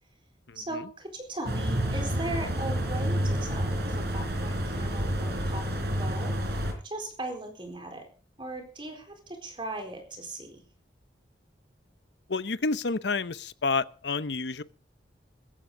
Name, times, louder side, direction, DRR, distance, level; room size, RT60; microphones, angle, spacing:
voice 1, 0.5-5.7 6.0-8.1 8.4-10.6, right 2 dB, 30° right, 4.2 m, -38 dB
sound 1, 1.5-6.7, equal, 65° right, 4.1 m, -29 dB
voice 2, 12.3-14.6, left 4 dB, 75° left, 0.8 m, -29 dB
16.5 x 15.0 x 3.8 m
head